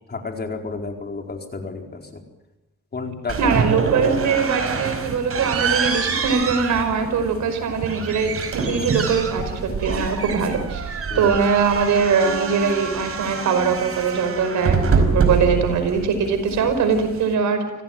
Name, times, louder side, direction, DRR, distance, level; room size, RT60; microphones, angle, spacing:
voice 1, 0.1-2.2 2.9-3.7 11.1-11.3, left 4 dB, 35° left, 3 dB, 4.5 m, -31 dB
sound 1, 3.3-17.3, right 5 dB, 50° right, 5.0 m, -25 dB
voice 2, 3.4-17.6, right 5 dB, 70° right, 8 dB, 5.2 m, -22 dB
25.5 x 17.0 x 9.1 m, 1.0 s
cardioid pair, 90°, 30 cm